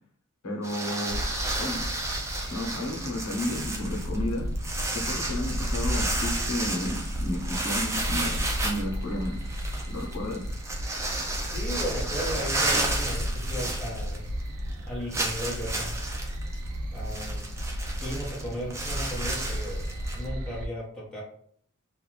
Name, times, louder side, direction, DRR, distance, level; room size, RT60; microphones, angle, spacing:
voice 1, 0.4-1.2 1.6-1.8 2.5-9.4 9.9-10.4, left 1 dB, 85° left, -1 dB, 0.8 m, -32 dB
sound 1, 0.6-14.4 14.7-14.8 15.1-20.3, right 2 dB, 15° right, 0.3 m, -32 dB
sound 2, 1.1-20.7, equal, 75° right, 0.4 m, -33 dB
voice 2, 11.5-14.2 14.9-15.9 16.9-17.5 17.8-19.9 20.1-21.2, equal, 5° left, -8 dB, 0.9 m, -35 dB
2.5 x 2.3 x 3.1 m, 0.62 s
head